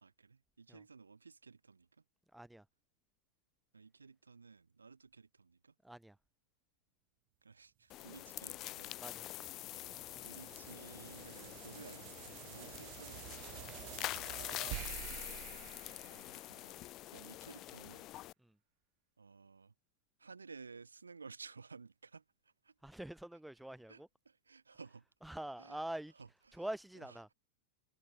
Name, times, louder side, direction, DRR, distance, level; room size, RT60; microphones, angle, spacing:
voice 1, 0.0-2.0 3.7-5.7 7.4-9.0 10.2-14.4 16.0-16.8 17.1-18.2 19.2-19.7 20.2-22.7 23.9-25.0 25.6-25.8 26.2-26.6 27.1-27.2, right 4 dB, 75° right, 1.3 m, -56 dB
voice 2, 2.3-2.6 5.8-6.2 9.0-9.3 14.5-15.1 18.4-18.6 22.8-24.1 25.2-26.1 26.5-27.3, right 1 dB, 5° right, 4.9 m, -46 dB
sound 1, 7.9-18.3, left 16 dB, 35° left, 0.6 m, -46 dB
sound 2, 8.3-16.9, right 40 dB or more, 45° right, 1.5 m, -50 dB
figure-of-eight pair, 90°, 0 cm